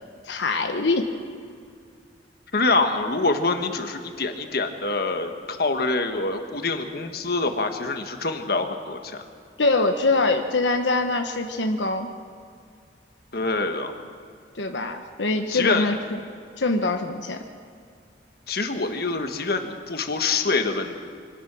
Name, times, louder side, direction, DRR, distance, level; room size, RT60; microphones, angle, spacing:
voice 1, 0.3-1.1 9.6-12.1 14.5-16.0 16.6-17.4, left 3 dB, 90° left, 5 dB, 1.1 m, -23 dB
voice 2, 2.5-9.2 13.3-13.9 15.5-15.9 18.5-21.0, left 3 dB, 55° left, 6 dB, 1.5 m, -25 dB
24.5 x 17.5 x 6.2 m, 2.3 s
head